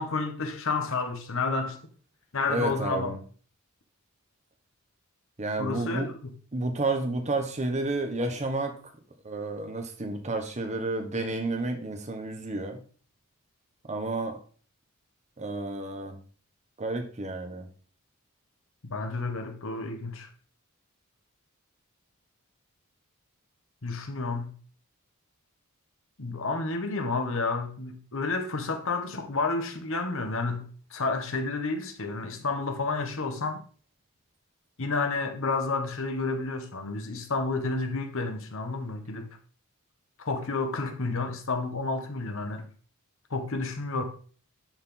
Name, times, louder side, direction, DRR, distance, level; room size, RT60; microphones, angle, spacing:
voice 1, 0.0-1.8 2.3-3.1 5.6-6.3 18.9-20.3 23.8-24.5 26.2-33.6 34.8-39.3 40.2-42.6 43.3-44.0, left 3 dB, 65° left, 1.3 m, -30 dB
voice 2, 2.5-3.2 5.4-6.1 6.5-8.8 9.2-12.8 13.9-14.4 15.4-16.2 16.8-17.7, right 2 dB, 30° right, 1.1 m, -31 dB
10.0 x 4.4 x 3.8 m
head